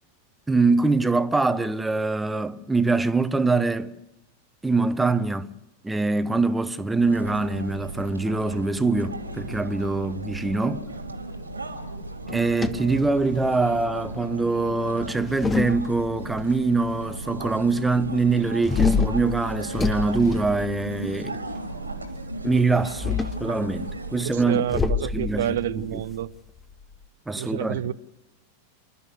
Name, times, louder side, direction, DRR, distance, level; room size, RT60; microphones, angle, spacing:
voice 1, 0.5-4.0 4.6-5.5 5.8-10.8 12.3-21.4 22.4-24.6 25.0-26.0 27.3-27.8, right 3 dB, 10° right, 1.2 m, -24 dB
sound 1, 7.0-24.6, right 2 dB, 80° right, 2.8 m, -36 dB
sound 2, 12.3-13.7 15.0-16.4 18.6-21.2 22.8-23.5 24.7-27.0, left 5 dB, 15° left, 1.2 m, -27 dB
voice 2, 24.3-26.3 27.4-27.9, right 11 dB, 60° right, 0.8 m, -28 dB
29.0 x 12.5 x 8.3 m
figure-of-eight pair, 90°, 0 cm